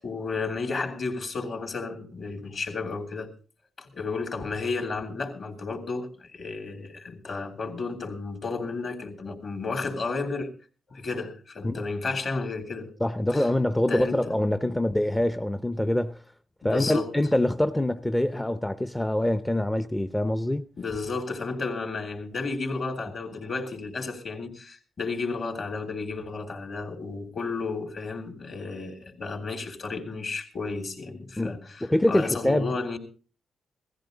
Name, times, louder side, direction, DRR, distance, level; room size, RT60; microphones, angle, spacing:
voice 1, 0.0-3.3 3.8-10.5 10.9-13.0 13.3-13.5 13.9-14.8 16.6-17.1 20.8-33.0, left 4 dB, 50° left, 3.4 m, -32 dB
voice 2, 13.0-16.2 16.6-20.7 31.4-32.7, left 1 dB, 10° left, 0.6 m, -25 dB
17.5 x 14.5 x 3.9 m
cardioid pair, 85°, 0 cm